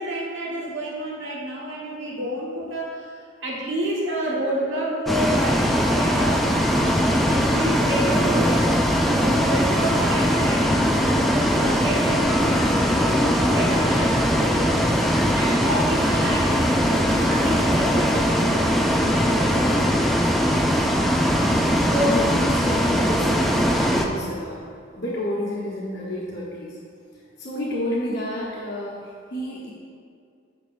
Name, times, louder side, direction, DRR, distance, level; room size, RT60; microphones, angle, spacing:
voice 1, 0.0-3.1 3.4-8.6 9.2-20.1 21.9-22.1, right 1 dB, 65° right, -4 dB, 1.5 m, -29 dB
Bus, 5.1-24.1, equal, ahead, 0.3 m, -20 dB
sound 1, 12.3-18.4, left 4 dB, 30° right, 1.3 m, -39 dB
voice 2, 21.3-21.7 22.0-24.6 24.9-26.8 27.4-29.7, left 1 dB, 55° left, -8 dB, 1.2 m, -30 dB
9.2 x 6.6 x 2.6 m, 2.2 s
head